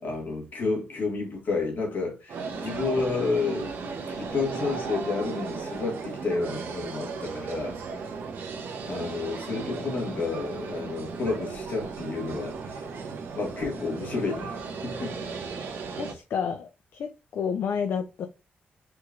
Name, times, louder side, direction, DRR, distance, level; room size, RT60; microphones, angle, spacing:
voice 1, 0.0-3.7 4.1-7.8 8.8-12.9 13.3-15.3, left 4 dB, 55° left, 2.0 m, -30 dB
sound 1, 2.3-16.1, right 4 dB, 85° right, 0.9 m, -36 dB
voice 2, 16.0-18.3, left 7 dB, 75° left, 0.5 m, -30 dB
4.4 x 3.0 x 2.5 m
cardioid pair, 100°, 4 cm